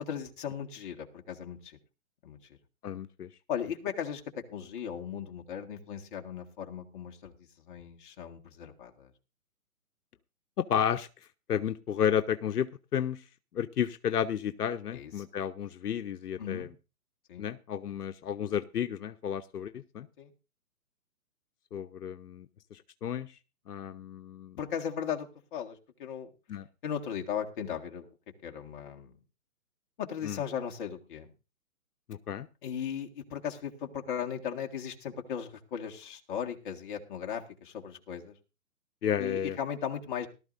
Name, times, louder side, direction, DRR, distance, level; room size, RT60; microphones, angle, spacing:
voice 1, 0.0-1.8 2.2-2.4 3.5-4.2 4.5-9.1 14.9-15.1 16.4-16.7 17.3-17.4 20.2-20.3 24.6-26.3 26.8-28.1 28.4-29.2 30.0-31.3 32.6-38.3 39.2-40.3, left 8 dB, 35° left, 3 dB, 1.6 m, -37 dB
voice 2, 2.8-3.3 10.6-11.1 11.5-13.2 13.5-16.7 17.4-20.1 21.7-22.5 22.7-23.3 23.7-24.6 26.5-26.7 30.2-30.4 32.1-32.5 39.0-39.6, left 9 dB, 80° left, 10 dB, 0.8 m, -32 dB
18.0 x 12.5 x 2.6 m, 0.31 s
hypercardioid pair, 155°, 46 cm